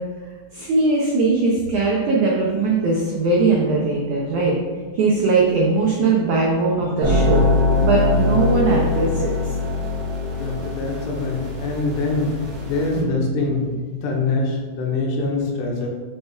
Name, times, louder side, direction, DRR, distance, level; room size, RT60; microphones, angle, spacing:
voice 1, 0.5-4.6 4.9-7.4 7.8-9.3 13.0-13.1, right 3 dB, 80° right, -3 dB, 1.7 m, -20 dB
sound 1, 7.0-13.0, left 2 dB, 55° right, 1.9 m, -22 dB
voice 2, 10.4-12.4 12.6-15.9, left 3 dB, 80° left, 0 dB, 3.3 m, -24 dB
7.3 x 5.6 x 4.5 m, 1.5 s
omnidirectional pair, 4.9 m